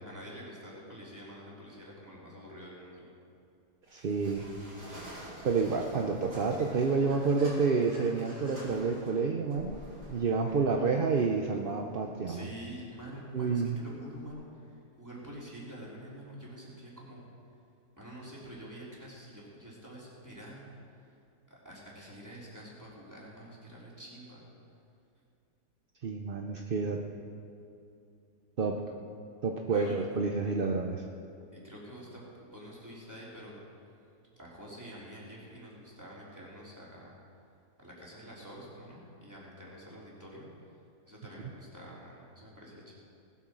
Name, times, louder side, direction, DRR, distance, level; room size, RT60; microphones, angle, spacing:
voice 1, 0.0-3.1 10.4-10.7 12.3-14.7 15.0-17.2 18.0-20.8 21.5-24.4 29.7-30.0 31.5-33.6 34.4-37.1 37.8-40.5 41.1-42.9, equal, 10° right, -6 dB, 3.4 m, -47 dB
sound 1, 3.8-14.3, equal, 80° right, 4.0 m, -49 dB
voice 2, 3.9-4.5 5.4-9.8 10.1-12.5 13.3-13.8 26.0-27.0 28.6-28.8 29.4-31.0, right 4 dB, 50° right, 2 dB, 0.7 m, -29 dB
19.0 x 8.5 x 6.2 m, 2.6 s
omnidirectional pair, 1.7 m